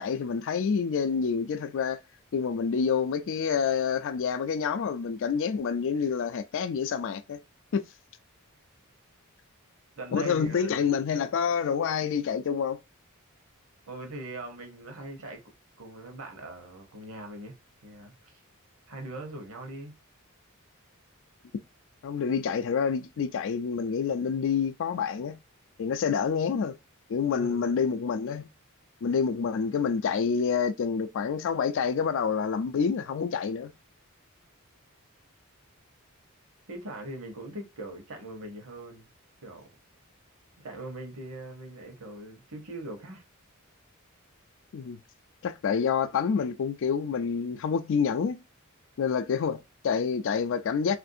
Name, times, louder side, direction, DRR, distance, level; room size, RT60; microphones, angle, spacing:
voice 1, 0.0-2.0 2.3-7.4 7.7-7.8 10.1-12.8 22.0-25.4 25.8-26.7 27.1-28.5 29.0-33.7 44.7-45.0 45.4-48.4 49.0-51.0, left 6 dB, 60° left, 0.4 m, -28 dB
voice 2, 10.0-11.0 13.9-15.5 15.8-17.5 17.8-18.4 18.9-19.9 27.2-27.8 36.7-39.1 39.4-39.7 40.6-43.2, right 2 dB, 65° right, 0.9 m, -41 dB
3.2 x 2.5 x 2.6 m
head